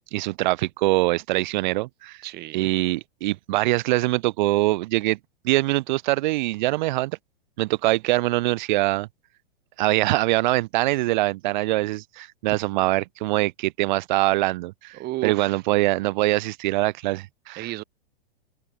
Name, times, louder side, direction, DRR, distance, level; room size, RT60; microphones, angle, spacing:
voice 1, 0.0-2.2 2.5-5.2 5.4-7.2 7.6-9.1 9.8-17.7, right 19 dB, 50° right, 1.1 m, -23 dB
voice 2, 2.2-2.7 14.9-15.6 17.6-17.8, right 18 dB, 35° right, 2.1 m, -33 dB
hypercardioid pair, 110°, 29 cm